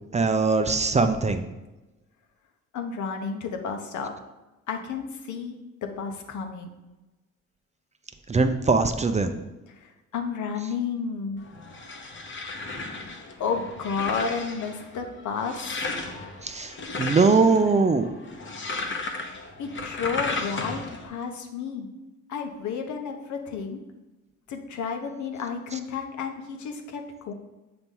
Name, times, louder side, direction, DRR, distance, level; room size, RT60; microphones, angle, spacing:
voice 1, 0.1-1.4 8.3-9.4 16.4-18.1, right 4 dB, 25° right, 8 dB, 0.4 m, -21 dB
voice 2, 2.7-4.1 4.7-6.8 9.7-11.5 13.4-15.8 19.6-21.9 22.3-23.8 24.5-27.3, left 5 dB, 75° left, 4 dB, 0.9 m, -32 dB
sound 1, 11.4-21.1, left 3 dB, 40° left, 0.9 m, -35 dB
6.7 x 3.0 x 5.3 m, 1.1 s
cardioid pair, 90°, 30 cm